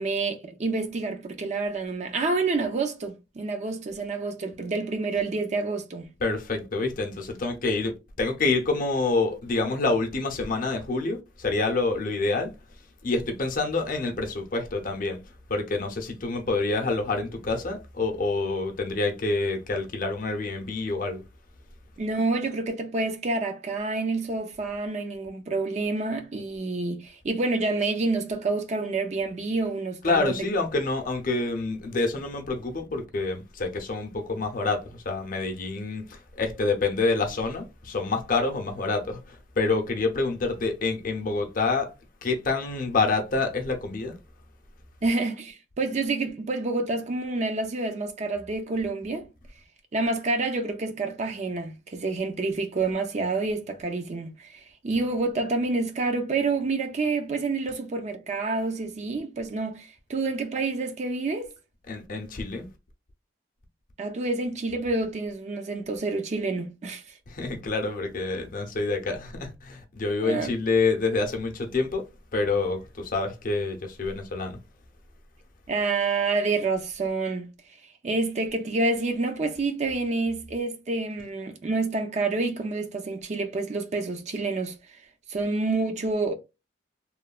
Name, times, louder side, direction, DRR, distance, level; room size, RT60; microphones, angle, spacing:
voice 1, 0.0-6.1 22.0-30.4 45.0-49.3 49.9-61.5 64.0-67.0 70.2-70.5 75.7-77.5 78.0-84.8 85.3-86.3, right 3 dB, 35° right, 0.4 m, -28 dB
voice 2, 6.2-12.5 13.0-15.2 15.5-21.2 30.0-41.9 42.2-44.1 61.9-62.6 67.3-72.0 72.3-74.6, left 3 dB, 45° left, 0.6 m, -27 dB
3.0 x 2.1 x 2.3 m
head